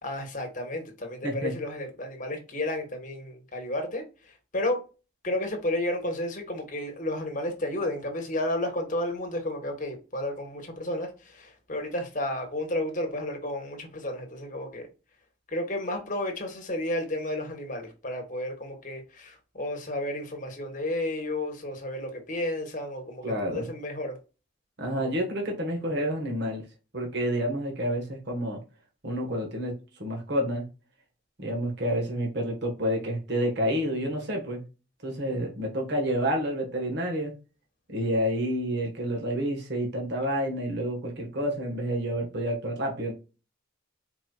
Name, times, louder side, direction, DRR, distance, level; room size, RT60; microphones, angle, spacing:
voice 1, 0.0-4.9 5.2-14.9 15.5-24.2, left 1 dB, 40° left, 1.2 m, -32 dB
voice 2, 23.2-23.7 24.8-26.6 26.9-28.6 29.0-30.7 31.4-34.6 35.0-37.3 37.9-43.1, equal, 55° right, 1.3 m, -29 dB
4.4 x 4.1 x 2.3 m
head